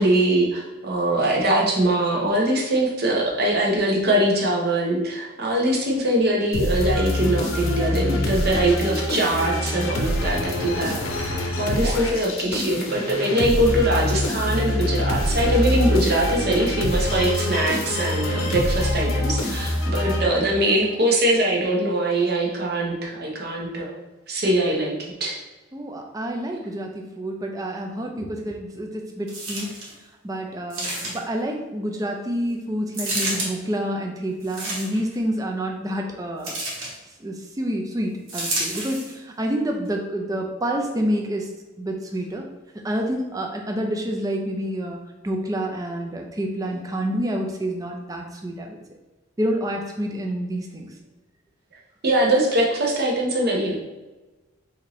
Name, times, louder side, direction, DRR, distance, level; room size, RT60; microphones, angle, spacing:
voice 1, 0.0-24.0 24.3-25.4 52.0-53.8, right 1 dB, 50° right, -2 dB, 0.8 m, -22 dB
sound 1, 6.5-20.8, left 1 dB, 75° left, 0.6 m, -25 dB
voice 2, 25.7-29.7 30.2-36.6 37.2-41.5 41.8-42.5 42.8-45.0 45.2-48.8 49.4-50.9, equal, 15° right, 2 dB, 0.4 m, -28 dB
sound 2, 29.3-29.9 30.7-31.4 32.9-33.5 34.4-35.1 36.4-36.9 38.3-39.1 39.8-39.9, right 1 dB, 85° right, 1.2 m, -29 dB
4.4 x 2.6 x 3.0 m, 1.1 s
head